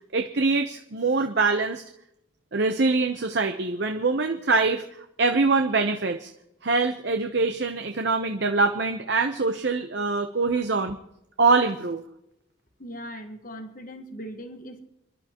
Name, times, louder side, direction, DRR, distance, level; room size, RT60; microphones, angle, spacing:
voice 1, 0.1-1.8 2.5-4.8 5.2-6.3 6.6-11.0 11.4-12.0, right 3 dB, 55° right, 5 dB, 0.8 m, -24 dB
voice 2, 12.8-14.8, equal, 40° left, 6 dB, 1.5 m, -39 dB
29.5 x 11.5 x 3.0 m, 0.83 s
head